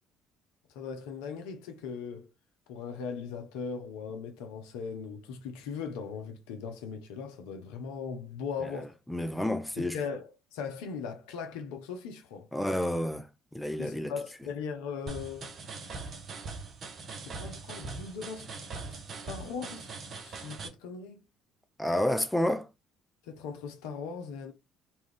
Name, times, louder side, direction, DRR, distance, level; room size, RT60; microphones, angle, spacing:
voice 1, 0.7-2.3 2.7-9.0 9.8-12.5 13.8-15.5 17.2-18.5 18.9-19.0 19.2-21.2 23.2-24.5, left 6 dB, 75° left, 0.5 m, -39 dB
voice 2, 9.1-10.0 12.5-13.3 13.5-14.1 21.8-22.7, left 1 dB, 5° left, 0.5 m, -29 dB
sound 1, 15.1-20.7, right 4 dB, 50° right, 0.7 m, -41 dB
2.6 x 2.3 x 3.3 m
hypercardioid pair, 55°, 0 cm